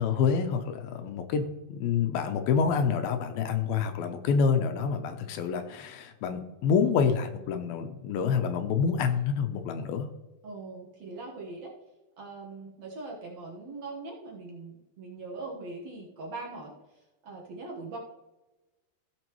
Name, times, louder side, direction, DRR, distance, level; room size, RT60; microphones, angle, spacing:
voice 1, 0.0-1.4 1.7-10.1, left 6 dB, 80° left, 7 dB, 2.6 m, -27 dB
voice 2, 10.4-11.7 12.2-18.0, right 3 dB, 55° right, -2 dB, 2.1 m, -41 dB
15.0 x 6.8 x 3.1 m, 1.1 s
omnidirectional pair, 4.4 m